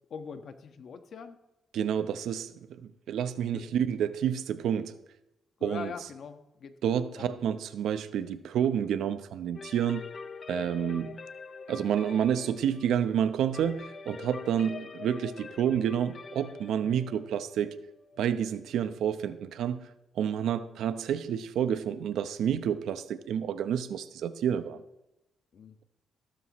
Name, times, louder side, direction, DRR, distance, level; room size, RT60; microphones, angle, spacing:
voice 1, 0.1-1.4 3.5-3.7 5.6-6.7 7.2-7.5 10.6-10.7 16.8-17.0 25.5-25.7, left 6 dB, 60° left, 1.3 m, -43 dB
voice 2, 1.7-4.9 5.6-5.9 6.8-10.0 10.5-11.2 11.7-17.8 18.2-19.9 20.2-24.8, right 9 dB, 85° right, 0.9 m, -29 dB
sound 1, 9.6-19.2, left 5 dB, 40° left, 0.9 m, -45 dB
16.0 x 13.0 x 3.1 m
cardioid pair, 105°, 0 cm